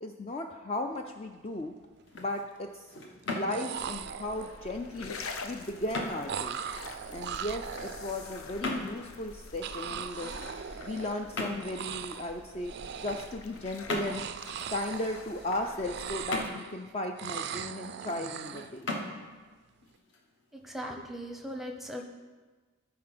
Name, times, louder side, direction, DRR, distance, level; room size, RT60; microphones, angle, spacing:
voice 1, 0.0-1.8 2.1-2.9 3.3-5.2 5.4-6.6 7.1-10.3 10.7-12.7 13.0-14.2 14.7-18.9, left 1 dB, 30° left, 4 dB, 0.4 m, -36 dB
sound 1, 1.1-1.3 1.6-2.2 3.2-3.3 3.5-4.7 6.3-8.5 9.6-11.3 11.6-12.3 12.6-13.4 13.9-15.5 15.8-16.8 17.2-18.7, right 8 dB, 50° right, 0.3 m, -40 dB
sound 2, 1.9-20.8, left 2 dB, 55° left, 1.2 m, -41 dB
sound 3, 3.8-16.5, left 3 dB, 75° left, 0.8 m, -46 dB
voice 2, 20.5-22.0, equal, ahead, 3 dB, 0.7 m, -39 dB
13.0 x 4.8 x 5.9 m, 1.4 s
head